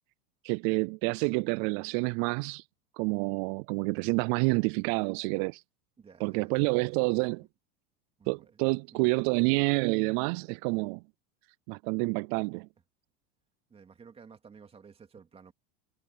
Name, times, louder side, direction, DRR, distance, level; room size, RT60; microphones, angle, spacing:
voice 1, 0.4-2.6 3.0-5.6 6.2-7.4 8.3-11.0 11.7-12.7, right 30 dB, 50° right, 0.4 m, -28 dB
voice 2, 6.0-7.5 8.2-8.6 8.9-9.1 13.7-15.5, right 6 dB, 20° right, 2.5 m, -54 dB
supercardioid pair, 135°, 32 cm